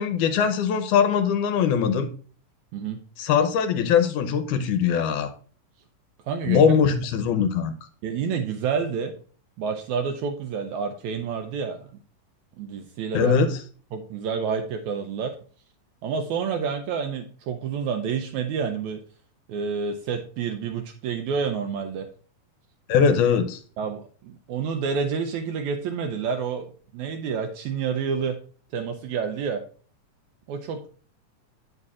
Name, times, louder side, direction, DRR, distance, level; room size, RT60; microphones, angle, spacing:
voice 1, 0.0-2.1 3.2-5.3 6.5-7.8 13.1-13.6 22.9-23.6, left 7 dB, 80° left, 8 dB, 2.0 m, -21 dB
voice 2, 6.3-6.6 8.0-9.1 9.6-11.9 12.6-13.4 13.9-15.3 16.0-19.0 19.5-22.1 23.8-26.7 26.9-28.4 28.7-29.6 30.5-30.9, right 6 dB, 85° right, 6 dB, 1.7 m, -28 dB
8.9 x 6.7 x 2.4 m, 0.43 s
omnidirectional pair, 3.8 m